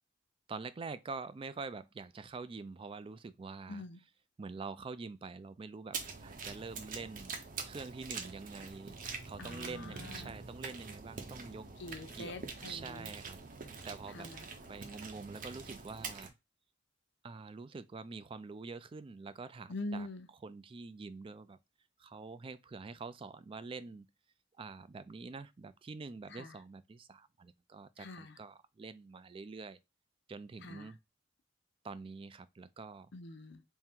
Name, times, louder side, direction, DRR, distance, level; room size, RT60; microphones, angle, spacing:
voice 1, 0.5-3.8 4.4-7.3 7.7-9.0 9.2-11.7 12.1-12.3 12.6-13.4 13.9-14.3 14.7-16.3 17.2-20.1 20.4-21.6 22.0-24.1 24.6-29.8 30.3-31.0 31.8-33.1, right 4 dB, 30° right, 0.3 m, -46 dB
voice 2, 3.7-4.0 9.4-10.3 11.8-13.1 14.1-14.5 19.7-20.3 26.3-26.5 28.0-28.4 30.6-30.9 33.1-33.6, left 2 dB, 65° left, 0.7 m, -44 dB
sound 1, 5.9-16.3, right 4 dB, 45° right, 0.8 m, -45 dB
3.7 x 2.1 x 4.4 m
head